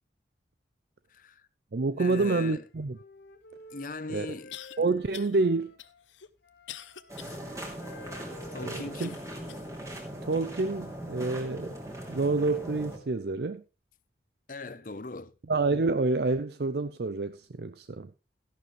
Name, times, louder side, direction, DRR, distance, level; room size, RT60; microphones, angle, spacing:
voice 1, 1.1-1.5 2.0-2.6 3.7-4.6 7.2-7.5 8.5-9.2 14.5-15.3, left 3 dB, 45° left, 0.8 m, -40 dB
voice 2, 1.7-3.0 4.1-4.3 4.8-5.8 8.6-9.1 10.2-11.8 12.1-13.6 15.5-18.1, right 3 dB, 60° right, 0.5 m, -28 dB
Wind instrument woodwind instrument, 2.4-6.1 6.4-10.0, left 2 dB, 65° left, 2.4 m, -51 dB
sound 1, 3.5-3.6 4.5-4.8 5.1-5.4 5.8-7.4 7.9-8.0 9.0-9.7 10.3-10.4 11.2-11.3, left 11 dB, 90° left, 0.8 m, -45 dB
sound 2, 7.1-13.0, right 1 dB, 15° right, 2.5 m, -40 dB
13.0 x 11.0 x 3.2 m
head